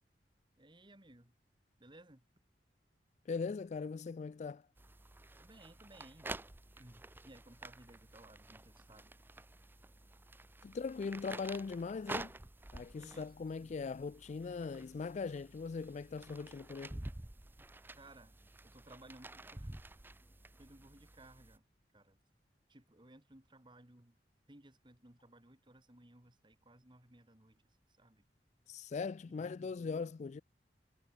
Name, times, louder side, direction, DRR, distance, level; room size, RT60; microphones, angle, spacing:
voice 1, 0.6-1.3 1.8-2.2 5.4-6.3 6.8-9.2 12.9-13.3 13.6-13.7 18.0-18.3 18.7-19.7 20.6-21.6 21.9-22.2 22.7-24.1 24.5-27.6 28.0-28.2 29.4-30.0, right 1 dB, 25° right, 2.9 m, -59 dB
voice 2, 3.3-4.7 10.6-12.3 12.7-17.0 28.7-30.4, left 4 dB, 40° left, 0.3 m, -40 dB
sound 1, 4.8-21.6, right 2 dB, 10° right, 0.6 m, -50 dB
head